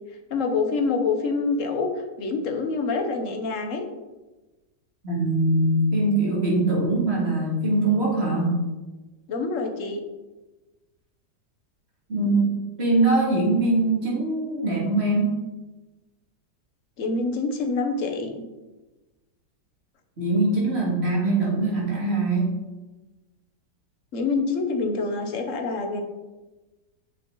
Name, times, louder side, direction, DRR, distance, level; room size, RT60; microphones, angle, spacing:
voice 1, 0.3-1.9 2.2-3.9 9.3-10.0 17.0-18.3 24.1-26.0, left 4 dB, 55° left, 4 dB, 1.3 m, -26 dB
voice 2, 5.0-8.5 12.1-12.5 12.8-15.3 20.2-22.5, right 2 dB, 35° right, -5 dB, 2.6 m, -22 dB
7.8 x 6.4 x 3.9 m, 1.1 s
omnidirectional pair, 1.8 m